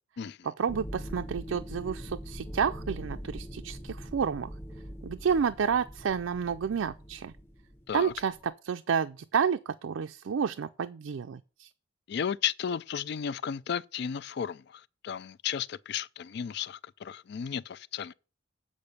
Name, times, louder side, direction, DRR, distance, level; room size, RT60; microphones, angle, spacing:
voice 1, 0.4-4.5 5.0-7.3 7.9-11.7, right 7 dB, 90° right, 0.4 m, -30 dB
sound 1, 0.7-8.5, equal, 10° left, 0.9 m, -42 dB
voice 2, 12.1-18.1, left 8 dB, 60° left, 0.4 m, -34 dB
8.7 x 5.2 x 6.5 m
head